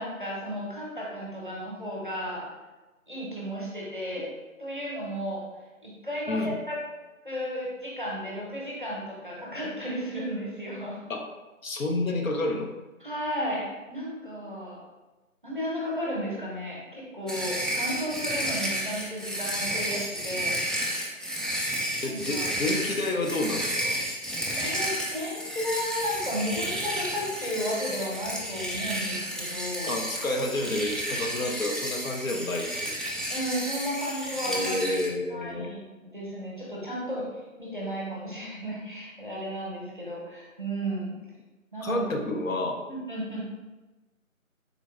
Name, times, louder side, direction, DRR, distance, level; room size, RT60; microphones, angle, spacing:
voice 1, 0.0-2.5 3.1-4.3 4.6-5.4 5.8-6.8 7.2-11.0 13.0-14.8 15.4-20.5 22.0-22.5 24.6-30.0 33.3-34.8 35.3-37.2 37.6-41.2 41.7-42.0 42.9-43.5, equal, 35° right, -5 dB, 0.7 m, -33 dB
voice 2, 11.6-12.7 22.0-24.0 29.8-33.0 34.5-35.7 41.8-42.8, left 2 dB, 70° left, 2 dB, 0.6 m, -29 dB
sound 1, 17.3-35.1, equal, ahead, 0.3 m, -32 dB
3.7 x 2.7 x 2.4 m, 1.2 s
figure-of-eight pair, 170°, 42 cm